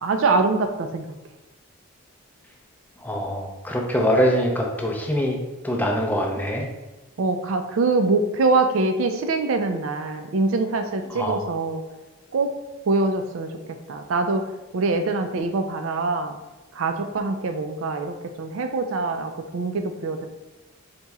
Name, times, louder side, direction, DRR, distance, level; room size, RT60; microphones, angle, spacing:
voice 1, 0.0-1.0 7.2-11.8 12.3-12.5 12.9-13.5 13.9-14.5 14.7-16.4 16.7-20.3, right 3 dB, 65° right, 7 dB, 0.4 m, -24 dB
voice 2, 3.0-5.4 5.6-6.6 11.1-11.4, equal, 10° left, 0 dB, 0.5 m, -23 dB
4.2 x 2.9 x 3.5 m, 1.1 s
head